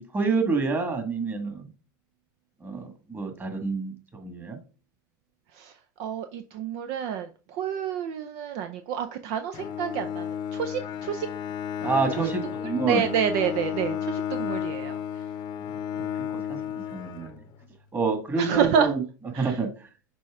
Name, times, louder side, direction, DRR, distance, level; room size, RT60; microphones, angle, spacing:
voice 1, 0.0-1.7 2.6-4.6 11.8-13.0 15.9-16.6 16.9-17.3 17.9-19.0 19.4-19.9, right 4 dB, 20° right, 5 dB, 1.8 m, -28 dB
voice 2, 5.5-11.3 12.8-15.2 18.4-18.9 19.3-19.6, right 8 dB, 60° right, 8 dB, 0.6 m, -28 dB
Bowed string instrument, 9.5-17.7, left 9 dB, 45° left, 0.8 m, -33 dB
6.2 x 4.3 x 3.7 m, 0.35 s
hypercardioid pair, 95°, 11 cm